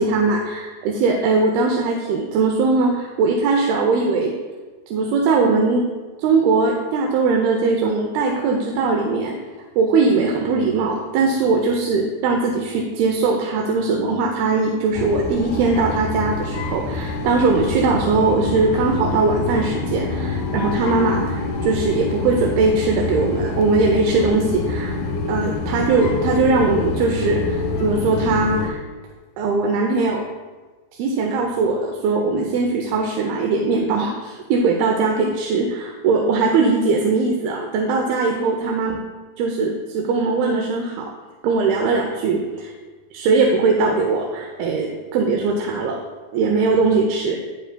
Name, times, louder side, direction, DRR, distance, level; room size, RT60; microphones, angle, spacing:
voice 1, 0.0-4.3 4.9-5.8 6.2-9.4 9.8-25.0 25.3-28.8 29.4-30.2 31.0-39.0 39.4-41.1 41.4-42.7 43.1-46.0 46.3-47.4, right 4 dB, 85° right, 2 dB, 2.6 m, -20 dB
sound 1, 14.9-28.7, left 3 dB, 75° left, 1.7 m, -26 dB
9.5 x 9.3 x 2.2 m, 1.4 s
omnidirectional pair, 4.4 m